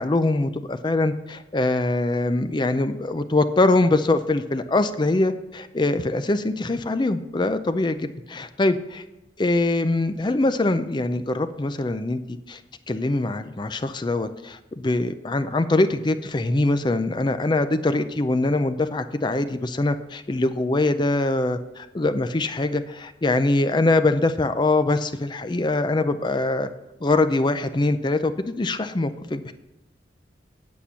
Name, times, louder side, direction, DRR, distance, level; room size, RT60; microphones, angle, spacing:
voice 1, 0.0-9.0 9.4-12.6 12.9-26.7 27.0-29.5, left 2 dB, 25° left, 10 dB, 0.5 m, -23 dB
8.5 x 8.4 x 5.6 m, 0.97 s
head